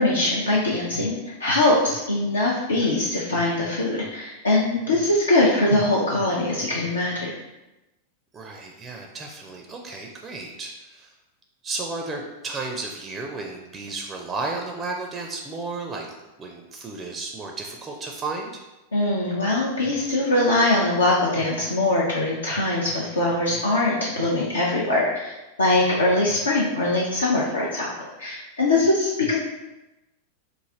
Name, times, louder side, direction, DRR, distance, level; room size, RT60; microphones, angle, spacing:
voice 1, 0.0-7.3 18.9-27.9 28.2-29.4, left 2 dB, 75° left, -5 dB, 0.5 m, -22 dB
voice 2, 8.3-11.1 11.6-16.1 16.4-18.6, right 3 dB, 20° right, 2 dB, 0.4 m, -33 dB
3.1 x 2.4 x 3.7 m, 1.0 s
figure-of-eight pair, 90°, 0 cm